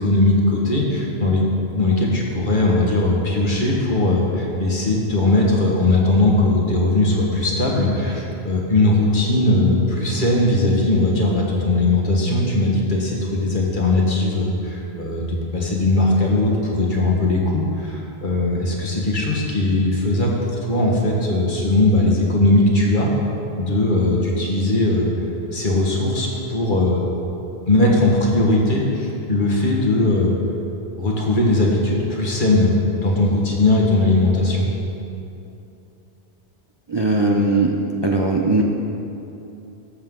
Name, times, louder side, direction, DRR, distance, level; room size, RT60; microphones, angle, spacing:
voice 1, 0.0-1.4 1.7-23.1 23.6-25.1 25.5-27.0 27.7-30.4 31.0-34.6, left 2 dB, 50° left, -2 dB, 1.6 m, -19 dB
voice 2, 36.9-37.7 38.0-38.6, right 2 dB, 35° right, 0 dB, 0.5 m, -18 dB
13.0 x 7.6 x 3.8 m, 2.8 s
omnidirectional pair, 1.1 m